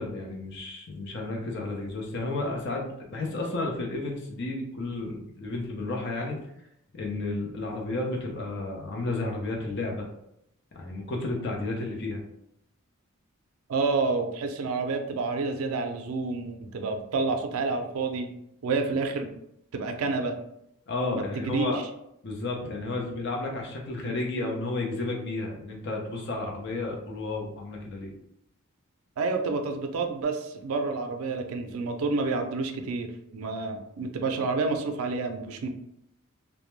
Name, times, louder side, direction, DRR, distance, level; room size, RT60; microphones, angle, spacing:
voice 1, 0.0-6.4 6.9-10.1 10.7-12.2 20.9-21.8 22.2-28.1, left 2 dB, 55° left, 0 dB, 0.5 m, -32 dB
voice 2, 13.7-18.3 18.6-19.3 19.7-20.4 21.1-21.2 21.5-21.7 29.2-35.7, right 3 dB, 75° right, 5 dB, 0.4 m, -29 dB
2.2 x 2.1 x 3.0 m, 0.78 s
head